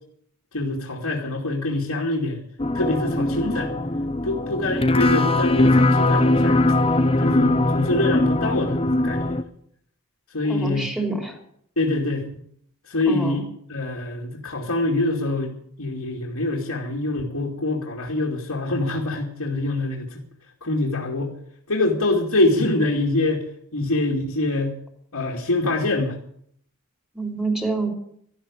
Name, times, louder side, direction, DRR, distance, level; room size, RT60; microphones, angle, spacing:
voice 1, 0.5-2.4 2.7-3.7 4.2-6.6 7.2-9.4 10.3-10.9 11.8-12.3 12.9-13.4 13.7-20.2 20.6-21.3 21.7-23.4 23.7-24.8 25.1-26.2, left 2 dB, 70° left, -2 dB, 2.6 m, -24 dB
sound 1, 2.6-9.4, left 2 dB, 25° left, 0.9 m, -20 dB
voice 2, 10.4-11.4 13.1-13.4 27.1-27.9, right 3 dB, ahead, 2 dB, 3.5 m, -27 dB
13.5 x 12.5 x 8.5 m, 0.67 s
head